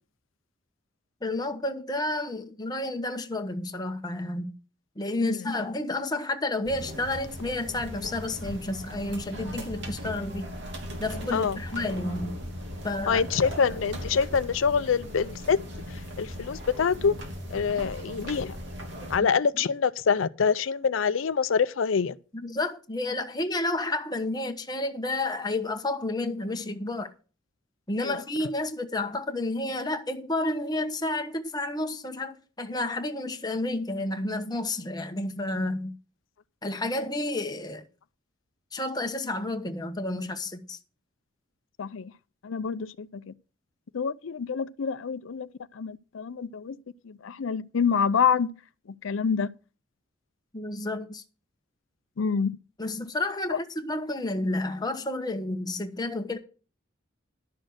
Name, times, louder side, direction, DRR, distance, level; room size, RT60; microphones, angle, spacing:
voice 1, 1.2-4.5 5.0-10.5 11.0-12.4 12.8-13.2 22.4-27.1 27.9-35.9 36.6-37.8 38.7-40.8 50.5-51.2 52.8-56.4, left 2 dB, 20° left, 1.1 m, -30 dB
sound 1, 6.6-19.2, equal, 65° right, 2.9 m, -38 dB
voice 2, 13.1-15.6 15.9-17.1 17.5-18.6 19.1-22.2 28.0-28.1 41.8-42.1 42.4-43.3 43.9-45.5 45.7-46.8 47.0-48.5 49.0-49.5 52.2-52.5 53.5-53.6, left 6 dB, 90° left, 0.5 m, -26 dB
11.5 x 6.4 x 6.2 m
head